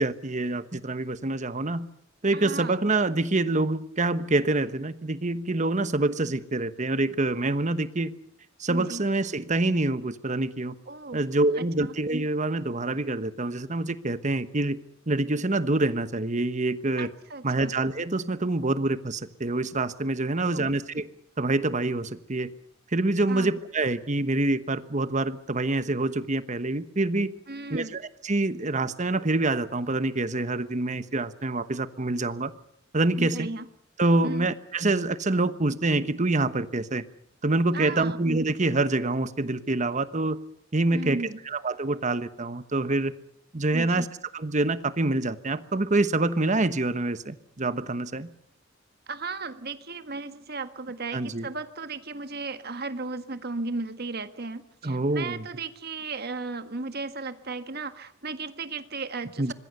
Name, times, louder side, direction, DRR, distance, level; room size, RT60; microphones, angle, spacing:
voice 1, 0.0-1.9 2.2-8.1 8.6-10.7 11.1-14.8 15.1-17.1 17.4-21.1 21.4-22.5 22.9-27.3 27.7-32.5 32.9-33.5 34.0-37.0 37.4-40.4 40.7-43.1 43.5-44.1 44.3-48.3 51.1-51.5 54.8-55.4 59.4-59.5, right 2 dB, 40° right, 13 dB, 1.2 m, -26 dB
voice 2, 2.3-2.8 8.7-9.0 10.9-11.3 11.5-11.9 17.0-17.7 20.4-20.8 23.3-23.5 27.5-28.0 33.2-33.6 34.2-34.5 37.7-38.2 40.9-41.4 43.7-44.1 49.1-59.5, right 3 dB, 55° right, 10 dB, 1.6 m, -35 dB
25.5 x 21.0 x 6.8 m, 0.68 s
head